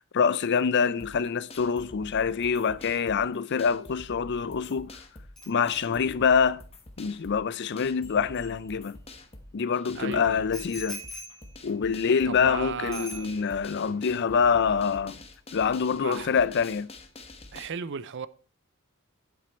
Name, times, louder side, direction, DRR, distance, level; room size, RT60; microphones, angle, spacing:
voice 1, 0.1-4.9 5.5-6.6 7.0-9.0 9.5-11.0 11.6-15.2 15.5-16.9, left 6 dB, 55° left, 0.5 m, -25 dB
sound 1, 1.0-17.7, left 2 dB, 30° left, 1.2 m, -47 dB
Bicycle bell, 5.4-9.2 10.5-12.6 12.9-13.8 14.1-14.3, left 1 dB, 5° left, 5.1 m, -45 dB
voice 2, 9.9-10.5 12.3-13.4 15.9-16.4 17.5-18.3, right 6 dB, 55° right, 0.5 m, -36 dB
9.4 x 8.0 x 4.3 m
head